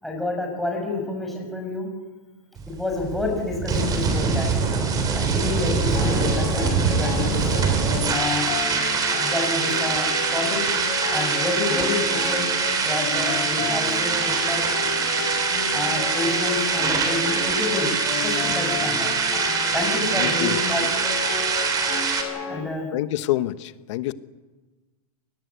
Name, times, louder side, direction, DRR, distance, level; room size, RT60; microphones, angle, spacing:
voice 1, 0.0-1.9 2.7-4.5 5.1-7.4 8.1-8.6 9.2-10.8 11.1-12.5 12.8-14.7 15.7-19.1 19.7-21.1 22.5-22.9, left 2 dB, ahead, -1 dB, 5.8 m, -29 dB
sound 1, 2.6-22.2, right 5 dB, 20° right, 3.4 m, -24 dB
sound 2, 5.9-22.6, left 5 dB, 35° left, 6.1 m, -32 dB
voice 2, 20.2-20.6 22.9-24.1, left 15 dB, 50° left, 14 dB, 1.2 m, -27 dB
26.5 x 19.5 x 8.3 m, 1.3 s
supercardioid pair, 160°, 19 cm